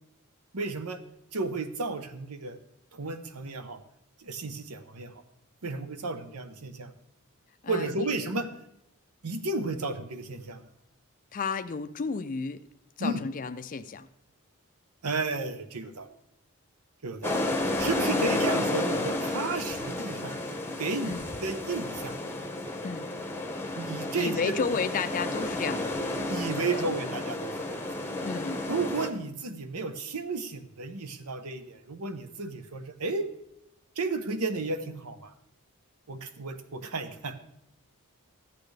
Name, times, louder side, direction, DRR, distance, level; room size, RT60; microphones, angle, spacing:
voice 1, 0.5-1.0 1.3-2.6 2.9-3.8 4.2-5.2 5.6-6.9 7.6-8.5 9.2-10.6 13.0-13.2 15.0-16.1 17.0-17.4 17.8-20.4 20.8-22.1 23.7-24.7 26.3-27.8 28.7-33.3 34.0-35.3 36.1-37.3, right 3 dB, 80° right, 9 dB, 0.9 m, -33 dB
voice 2, 7.6-8.1 11.3-12.6 13.0-14.1 18.1-18.3 21.0-21.3 22.8-23.1 24.1-26.9 28.2-28.7, left 5 dB, 35° left, 9 dB, 0.4 m, -33 dB
sound 1, 17.2-29.1, left 2 dB, 10° left, 0.8 m, -31 dB
13.5 x 8.6 x 3.3 m, 0.81 s
head